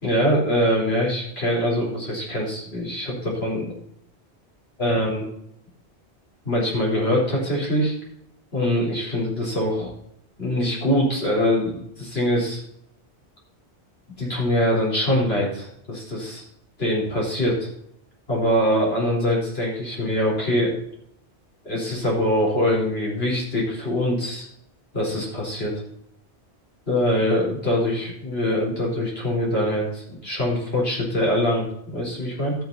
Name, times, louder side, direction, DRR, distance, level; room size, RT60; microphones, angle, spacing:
voice 1, 0.0-3.7 4.8-5.2 6.4-7.9 8.5-9.9 10.4-12.6 14.2-16.4 16.8-17.7 18.3-20.7 21.6-24.5 24.9-25.7 26.9-32.5, equal, 65° left, -3 dB, 4.6 m, -23 dB
13.0 x 9.0 x 4.1 m, 0.72 s
omnidirectional pair, 1.1 m